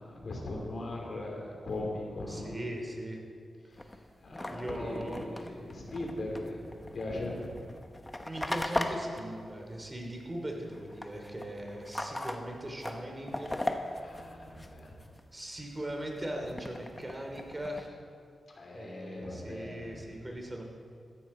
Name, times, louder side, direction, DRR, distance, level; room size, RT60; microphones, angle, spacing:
voice 1, 0.0-2.6 3.7-3.9 4.2-7.5 14.0-15.0 18.5-20.1, left 2 dB, 55° left, -1 dB, 3.2 m, -39 dB
voice 2, 2.3-3.2 3.8-4.0 4.5-5.4 8.2-13.5 15.3-18.0 18.7-20.6, right 1 dB, 20° right, 1 dB, 2.9 m, -39 dB
sound 1, 3.8-10.3 10.6-15.2 15.6-17.9, left 1 dB, 15° left, 1.1 m, -39 dB
15.5 x 14.5 x 4.4 m, 2.2 s
wide cardioid pair, 90°, 0 cm